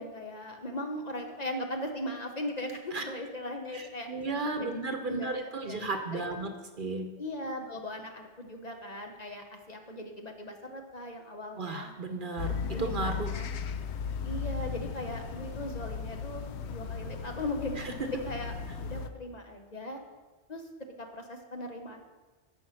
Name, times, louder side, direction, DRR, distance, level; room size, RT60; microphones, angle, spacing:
voice 1, 0.0-4.1 4.4-4.7 5.1-5.3 5.7-5.8 6.1-6.5 7.2-11.9 12.7-13.5 14.2-17.9 18.2-18.5 18.8-20.0 20.5-20.6 21.0-22.0, left 1 dB, 40° left, 3 dB, 0.9 m, -38 dB
voice 2, 3.7-6.5 6.8-7.1 11.6-12.5 12.8-13.3 17.8-17.9, right 3 dB, 50° right, 5 dB, 0.9 m, -34 dB
sound 1, 12.4-19.1, left 6 dB, 80° left, 0.9 m, -36 dB
10.5 x 5.3 x 6.3 m, 1.2 s
omnidirectional pair, 1.1 m